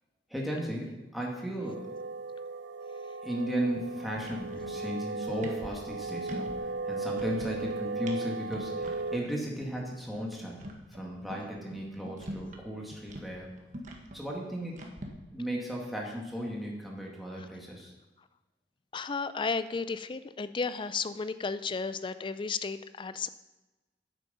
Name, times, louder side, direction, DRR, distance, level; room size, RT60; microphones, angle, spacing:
voice 1, 0.3-1.9 3.2-10.6 10.9-13.5 14.1-14.9 15.3-17.9, equal, ahead, -3 dB, 1.9 m, -35 dB
sound 1, 1.6-9.2, right 3 dB, 80° right, 0.4 m, -37 dB
sound 2, 3.8-3.9 4.2-4.9 5.2-6.6 6.9-7.7 8.0-8.2 8.5-9.0 9.3-9.4 9.6-9.7 10.0-12.6 12.9-15.1, equal, 45° right, 1.5 m, -43 dB
voice 2, 18.9-23.3, left 4 dB, 30° left, 13 dB, 0.4 m, -33 dB
9.1 x 8.3 x 5.6 m, 1.1 s
head